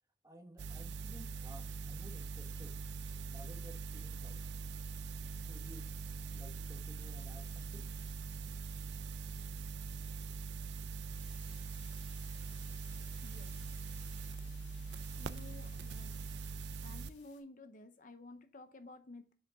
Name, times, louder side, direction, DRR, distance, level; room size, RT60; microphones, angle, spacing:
voice 1, 0.2-2.8 3.3-4.7 5.5-5.9 6.3-7.9, equal, 15° right, 1.1 m, -55 dB
sound 1, 0.6-17.1, right 5 dB, 65° right, 0.4 m, -43 dB
sound 2, 11.1-17.4, left 6 dB, 70° left, 2.4 m, -61 dB
voice 2, 13.2-13.5 15.2-16.2 16.8-19.3, left 2 dB, 45° left, 0.7 m, -53 dB
6.9 x 5.1 x 3.6 m
head